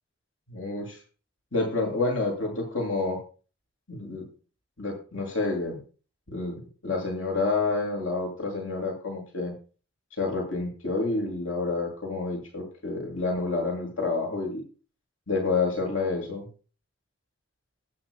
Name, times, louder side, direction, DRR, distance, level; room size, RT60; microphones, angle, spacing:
voice 1, 0.5-1.0 1.5-3.2 3.9-4.2 4.8-5.8 6.3-9.5 10.2-14.6 15.3-16.5, left 3 dB, 85° left, 1 dB, 7.8 m, -29 dB
21.0 x 9.4 x 2.4 m, 0.37 s
head